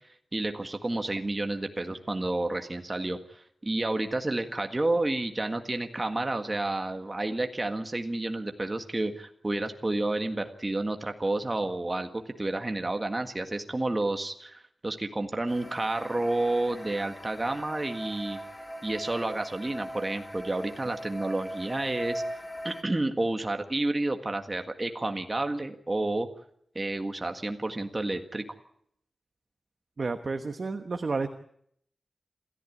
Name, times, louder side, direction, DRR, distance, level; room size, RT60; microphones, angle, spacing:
voice 1, 0.3-18.4 18.8-22.2 22.6-26.3 26.7-28.4, right 2 dB, 20° right, 6 dB, 1.7 m, -30 dB
sound 1, 15.5-22.8, equal, 20° left, 1.9 m, -40 dB
voice 2, 30.0-31.3, right 4 dB, 45° right, 7 dB, 1.2 m, -31 dB
27.5 x 14.0 x 8.5 m, 0.69 s
wide cardioid pair, 135°, 0 cm